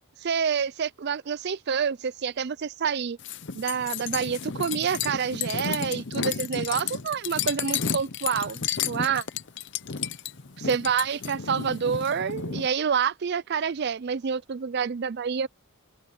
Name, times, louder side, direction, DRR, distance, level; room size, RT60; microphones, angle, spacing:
voice 1, 0.2-3.2 3.5-9.2 10.6-15.5, right 6 dB, 50° right, 0.4 m, -28 dB
sound 1, 3.2-12.7, left 7 dB, 55° left, 0.8 m, -32 dB
head